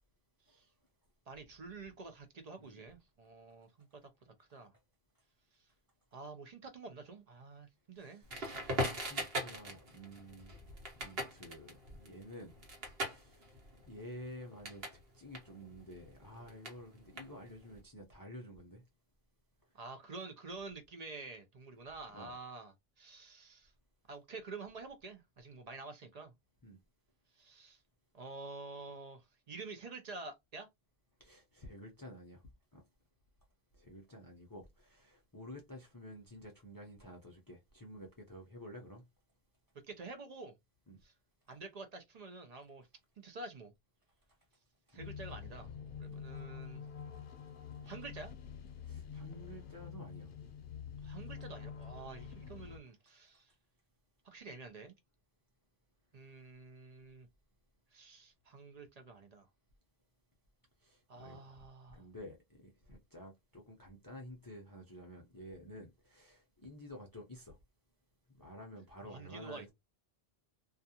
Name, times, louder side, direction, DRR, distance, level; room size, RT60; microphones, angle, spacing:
voice 1, 1.3-4.7 5.5-5.7 6.1-8.6 19.7-23.7 24.1-26.3 27.3-27.8 28.1-30.7 39.8-40.6 41.0-41.1 41.5-42.9 43.2-43.7 44.9-46.8 47.8-48.3 51.0-53.5 54.2-54.9 56.1-57.3 57.9-59.5 61.1-62.1 69.0-69.7, right 3 dB, 50° right, 0.5 m, -49 dB
voice 2, 7.9-8.3 8.8-12.6 13.0-13.6 13.9-18.8 22.1-22.3 26.6-26.8 31.2-32.4 32.7-32.8 33.7-39.0 40.9-41.0 44.9-45.1 48.8-50.3 60.8-61.6 61.9-67.6 68.3-69.7, equal, 25° left, 0.5 m, -51 dB
Crackle, 8.3-15.0 15.3-17.7, right 1 dB, 70° right, 1.2 m, -40 dB
sound 1, 45.0-52.8, left 7 dB, 60° left, 0.7 m, -47 dB
2.4 x 2.3 x 2.7 m
omnidirectional pair, 1.0 m